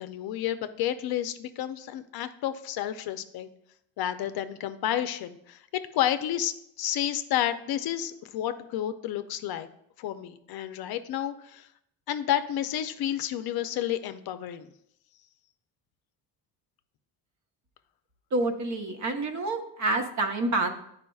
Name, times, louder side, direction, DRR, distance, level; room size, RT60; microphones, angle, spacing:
voice 1, 0.0-3.5 4.0-9.7 10.0-11.7 12.1-14.7, left 11 dB, 55° left, 10 dB, 0.6 m, -31 dB
voice 2, 18.3-20.7, right 2 dB, 40° right, 6 dB, 0.9 m, -28 dB
9.3 x 4.9 x 2.3 m, 0.72 s
supercardioid pair, 90°, 43 cm